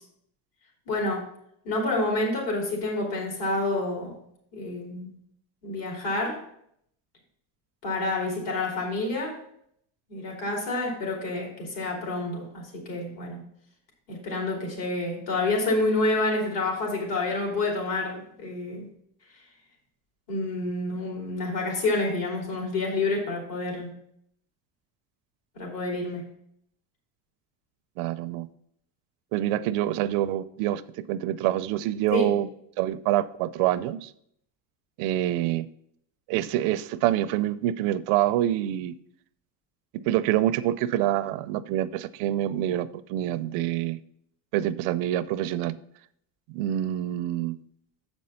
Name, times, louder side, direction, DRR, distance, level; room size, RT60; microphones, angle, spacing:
voice 1, 0.9-1.3 1.6-4.1 4.5-5.1 5.6-6.4 7.8-9.4 10.1-13.4 14.1-18.9 20.3-24.0 25.5-26.3 32.1-32.3, left 2 dB, 60° left, 0 dB, 3.1 m, -28 dB
voice 2, 28.0-28.5 29.3-30.8 31.1-32.5 32.8-34.1 35.0-35.7 36.3-38.9 39.9-44.0 44.5-45.8 46.5-47.6, right 13 dB, 85° right, 14 dB, 0.6 m, -26 dB
7.2 x 5.3 x 5.6 m, 0.70 s
cardioid pair, 140°, 49 cm